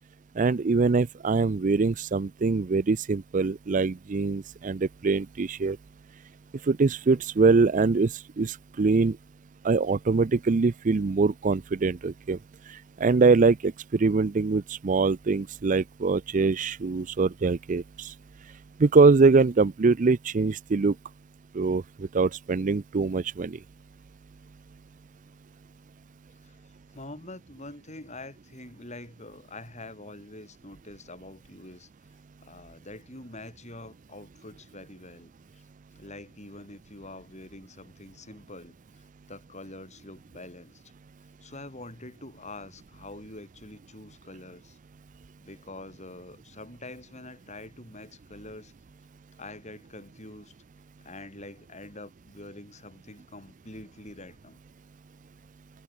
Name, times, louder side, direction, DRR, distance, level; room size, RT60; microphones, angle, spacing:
voice 1, 0.4-5.8 6.7-9.2 9.6-12.4 12.7-18.1 18.8-20.9 21.5-21.8 22.1-23.6, right 4 dB, 35° right, 0.4 m, -23 dB
voice 2, 26.9-31.9 32.4-35.6 36.0-38.8 39.3-40.8 41.4-44.8 45.4-48.7 49.4-50.5 51.0-54.6, left 2 dB, 30° left, 7.3 m, -45 dB
head